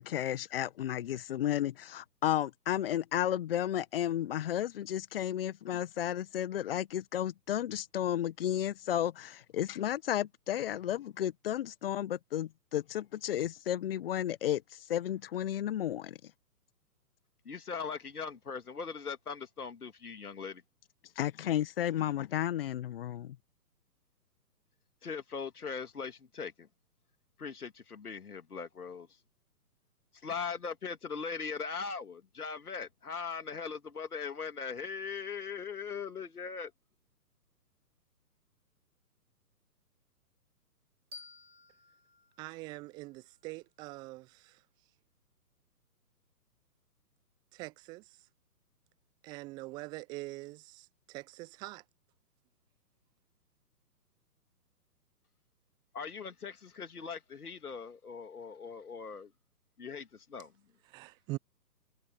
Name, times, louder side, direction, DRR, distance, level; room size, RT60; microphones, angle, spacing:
voice 1, 0.0-14.6 14.9-16.2 21.1-23.4, left 11 dB, 35° left, 1.8 m, -33 dB
voice 2, 17.4-20.6 25.0-26.7 27.4-29.1 30.2-36.7 55.9-59.3 59.8-60.5, left 5 dB, 65° left, 2.6 m, -40 dB
sound 1, 41.1-43.9, left 4 dB, 65° right, 4.2 m, -55 dB
voice 3, 42.4-44.6 47.5-48.0 49.2-51.8 60.9-61.4, right 21 dB, 10° right, 0.8 m, -43 dB
figure-of-eight pair, 130°, 48 cm